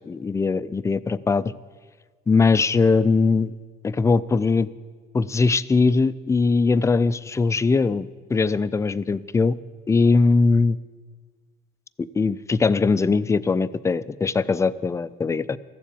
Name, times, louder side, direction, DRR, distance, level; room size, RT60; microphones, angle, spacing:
voice 1, 0.1-1.5 2.3-3.5 3.8-4.7 5.1-9.6 9.9-10.8 12.1-15.6, left 4 dB, 15° left, 16 dB, 0.4 m, -21 dB
14.5 x 7.4 x 8.5 m, 1.5 s
cardioid pair, 110°, 17 cm